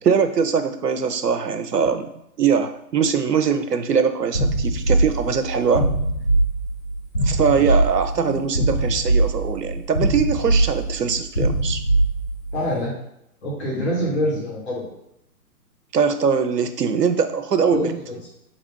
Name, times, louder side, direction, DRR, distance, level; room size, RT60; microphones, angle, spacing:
voice 1, 0.0-2.1 2.4-5.9 7.2-11.8 15.9-17.9, right 6 dB, 90° right, 9 dB, 0.6 m, -21 dB
sound 1, 4.3-12.6, right 2 dB, 15° left, 0.5 m, -22 dB
voice 2, 12.5-12.9 13.4-14.9 17.7-18.2, equal, 40° left, -4 dB, 1.7 m, -26 dB
4.1 x 2.8 x 4.5 m, 0.78 s
figure-of-eight pair, 140°, 47 cm